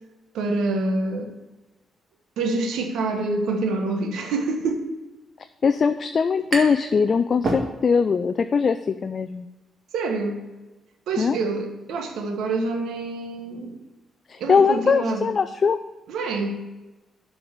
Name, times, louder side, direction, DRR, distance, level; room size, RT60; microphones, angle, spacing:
voice 1, 0.3-1.3 2.4-4.8 9.9-10.4 11.1-13.8 14.4-15.3 16.1-16.6, right 3 dB, 85° right, 4 dB, 1.2 m, -26 dB
voice 2, 5.6-9.5 11.2-11.4 14.3-15.8, left 5 dB, 50° left, 9 dB, 0.4 m, -21 dB
sound 1, 6.5-6.9 7.2-8.2, right 2 dB, 50° right, 1.7 m, -29 dB
7.2 x 4.6 x 6.6 m, 1.1 s
cardioid pair, 75°, 0 cm